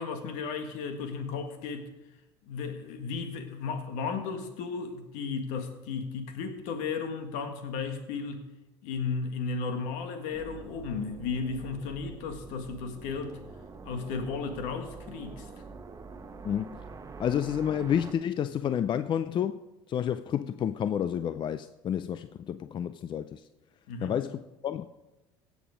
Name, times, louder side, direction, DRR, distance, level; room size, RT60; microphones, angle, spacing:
voice 1, 0.0-1.9 2.4-8.4 8.8-13.4 13.8-15.5 23.9-24.1, left 5 dB, 65° left, 7 dB, 1.7 m, -34 dB
sound 1, 10.3-18.1, right 4 dB, 25° right, 1.2 m, -46 dB
voice 2, 16.4-16.8 17.2-19.6 19.9-23.4 24.0-24.9, left 9 dB, 35° left, 12 dB, 0.5 m, -30 dB
16.5 x 7.3 x 5.1 m, 1.0 s
hypercardioid pair, 75°, 13 cm